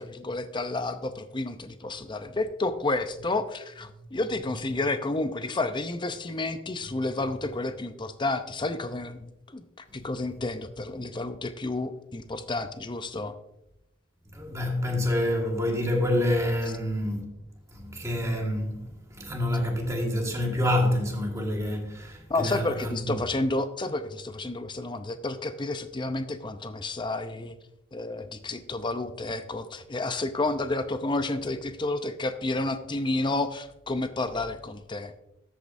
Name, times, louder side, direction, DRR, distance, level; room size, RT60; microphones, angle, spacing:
voice 1, 0.0-13.4 22.3-27.6 27.9-35.1, left 2 dB, 25° left, 0.6 m, -30 dB
voice 2, 4.1-4.8 14.3-17.3 17.7-23.3 34.3-34.4, left 1 dB, 15° right, 1.7 m, -28 dB
13.5 x 8.5 x 2.6 m
head